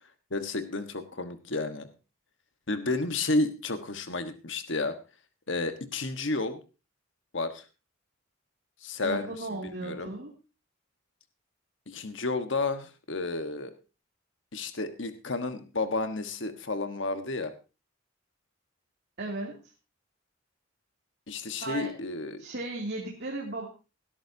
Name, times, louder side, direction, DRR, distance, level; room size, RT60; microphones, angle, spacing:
voice 1, 0.3-1.9 2.7-4.9 5.5-6.6 7.3-7.6 8.8-9.3 9.6-10.1 11.9-13.7 14.5-17.5 21.3-22.4, left 3 dB, 65° left, 9 dB, 1.4 m, -31 dB
voice 2, 9.0-10.3 19.2-19.6 21.6-21.9 22.4-23.7, right 2 dB, 55° right, -1 dB, 2.8 m, -35 dB
18.5 x 12.5 x 2.8 m, 0.30 s
head